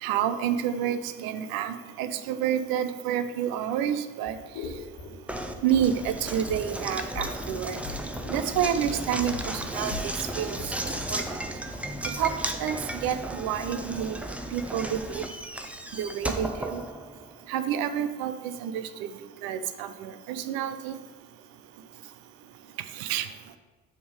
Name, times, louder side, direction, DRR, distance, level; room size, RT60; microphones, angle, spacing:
voice 1, 0.0-4.4 5.6-7.8 8.3-11.2 12.0-12.3 12.6-14.2 14.5-15.3 15.9-16.8 17.5-19.1 19.4-21.0 22.9-23.3, right 9 dB, 65° right, 10 dB, 0.6 m, -29 dB
sound 1, 4.2-11.1, left 4 dB, 70° left, 1.3 m, -40 dB
Knock, 5.3-17.4, right 1 dB, 5° right, 0.6 m, -35 dB
6.9 x 3.6 x 4.8 m, 1.3 s
hypercardioid pair, 50°, 38 cm